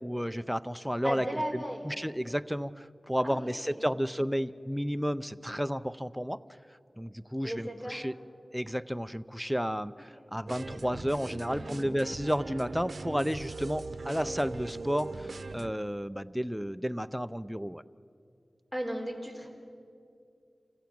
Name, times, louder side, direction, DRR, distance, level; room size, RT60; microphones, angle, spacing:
voice 1, 0.0-6.4 7.0-8.1 8.5-17.8, equal, ahead, 12 dB, 0.6 m, -32 dB
voice 2, 1.0-1.9 3.2-3.8 7.4-8.1 11.4-11.9 18.7-19.5, equal, 20° left, 0 dB, 3.9 m, -36 dB
sound 1, 10.5-15.7, right 3 dB, 75° right, 0.7 m, -40 dB
28.0 x 15.5 x 8.7 m, 2.5 s
wide cardioid pair, 60°, 0 cm